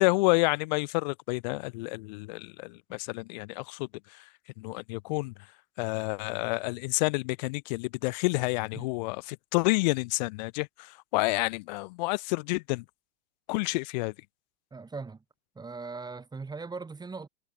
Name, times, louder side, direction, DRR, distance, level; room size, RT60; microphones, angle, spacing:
voice 1, 0.0-4.2 4.6-5.3 5.8-12.8 13.5-14.1, left 25 dB, 40° left, 0.6 m, -29 dB
voice 2, 14.7-15.2 15.5-17.3, right 4 dB, 10° right, 4.7 m, -39 dB
figure-of-eight pair, 95°, 35 cm